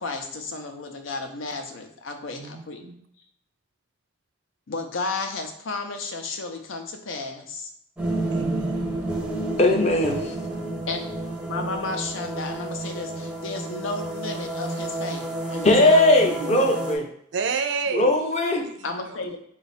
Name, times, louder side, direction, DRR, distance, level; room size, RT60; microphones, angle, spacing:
voice 1, 0.0-2.8 4.7-7.7 10.9-11.1 11.5-16.0 18.8-19.4, left 3 dB, 80° left, 5 dB, 0.6 m, -33 dB
voice 2, 2.3-3.0 8.3-9.0 9.7-9.8 10.2-10.8 16.2-16.7 17.3-18.1 18.6-19.2, right 5 dB, 60° right, 7 dB, 0.4 m, -32 dB
sound 1, 8.0-17.0, right 2 dB, 5° right, 0.5 m, -30 dB
voice 3, 9.6-10.1 15.6-17.0 17.9-18.7, left 1 dB, 35° left, 2 dB, 0.6 m, -19 dB
4.0 x 2.4 x 4.1 m, 0.69 s
head